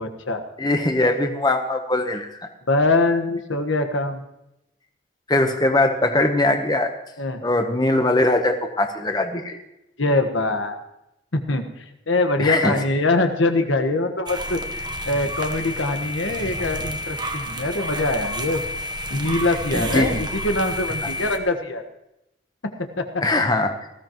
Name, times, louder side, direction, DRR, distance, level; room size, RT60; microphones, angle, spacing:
voice 1, 0.0-0.4 2.7-4.2 7.2-7.4 10.0-10.7 11.3-11.6 12.1-18.6 19.1-21.8 23.0-23.1, left 2 dB, 85° left, 6 dB, 1.4 m, -23 dB
voice 2, 0.6-2.5 5.3-6.9 7.4-9.6 12.4-12.7 19.7-20.1 21.0-21.1 23.2-23.7, left 2 dB, 20° left, 5 dB, 1.0 m, -21 dB
sound 1, 14.3-21.4, equal, 25° right, 1.0 m, -30 dB
19.0 x 15.0 x 3.0 m, 0.87 s
head